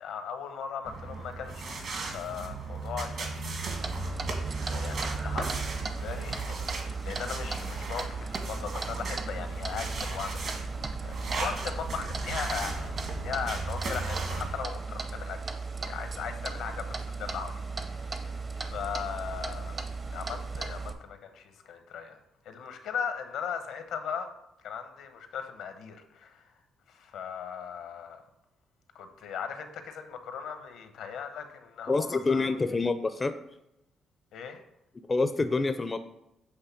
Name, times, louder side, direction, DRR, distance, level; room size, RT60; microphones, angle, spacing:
voice 1, 0.0-3.5 4.6-10.5 11.0-12.9 13.2-19.8 20.1-22.2 22.4-24.3 24.6-26.5 26.9-28.2 28.9-32.6 34.3-34.6, left 7 dB, 80° left, 8 dB, 0.9 m, -38 dB
sound 1, 0.8-14.5, right 3 dB, 60° right, 1.7 m, -36 dB
Clock, 3.7-20.9, right 4 dB, 35° right, 0.7 m, -36 dB
voice 2, 31.9-33.3 35.1-36.0, left 3 dB, 25° left, 10 dB, 0.4 m, -27 dB
8.0 x 3.3 x 5.7 m, 0.89 s
cardioid pair, 90°, 0 cm